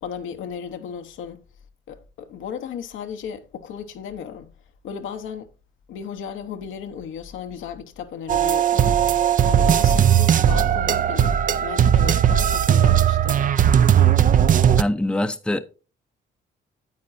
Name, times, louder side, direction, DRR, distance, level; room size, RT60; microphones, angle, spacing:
voice 1, 0.0-1.4 1.9-4.5 4.8-5.5 5.9-9.0 9.5-13.4, left 7 dB, 85° left, 1.0 m, -35 dB
sound 1, 8.3-14.8, right 9 dB, 45° right, 0.5 m, -17 dB
voice 2, 14.8-15.6, left 1 dB, 5° left, 0.6 m, -23 dB
9.5 x 8.5 x 2.6 m
cardioid pair, 90°, 20 cm